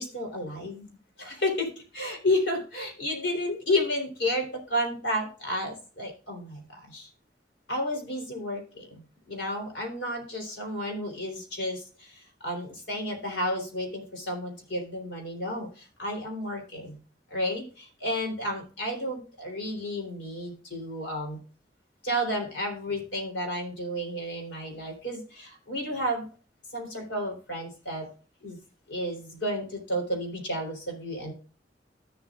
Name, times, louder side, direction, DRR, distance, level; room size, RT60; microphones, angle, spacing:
voice 1, 0.0-7.1 7.7-17.0 17.3-21.4 22.0-26.3 26.7-28.1 28.4-28.6 28.9-31.3, left 1 dB, 85° left, 2 dB, 3.5 m, -32 dB
13.0 x 7.4 x 2.4 m, 0.37 s
head